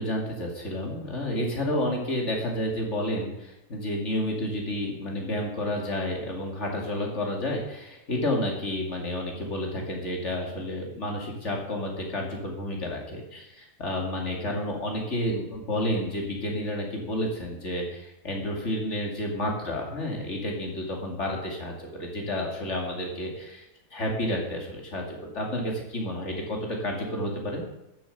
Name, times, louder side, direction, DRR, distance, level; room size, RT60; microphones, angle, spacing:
voice 1, 0.0-23.6 23.9-27.6, left 1 dB, 50° left, 0 dB, 2.9 m, -30 dB
13.5 x 7.6 x 6.6 m, 0.90 s
omnidirectional pair, 1.6 m